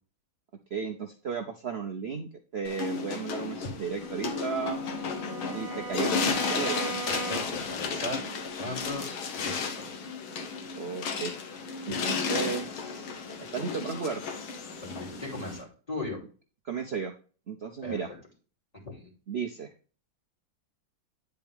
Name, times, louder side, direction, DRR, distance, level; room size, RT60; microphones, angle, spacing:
voice 1, 0.7-4.8 5.5-6.1 6.5-7.0 10.7-11.3 11.9-14.2 16.6-17.1 17.5-18.1 19.3-19.7, right 6 dB, 85° right, 3 dB, 0.5 m, -34 dB
sound 1, 2.6-15.6, left 5 dB, 90° left, 2.0 m, -33 dB
Bowed string instrument, 3.9-7.8, right 2 dB, 20° right, 1.1 m, -38 dB
voice 2, 7.1-8.2 8.6-9.1 9.3-10.0 14.8-16.2 17.8-18.2 18.8-19.1, left 2 dB, 20° left, -1 dB, 2.7 m, -38 dB
9.7 x 4.6 x 3.5 m, 0.37 s
omnidirectional pair, 2.2 m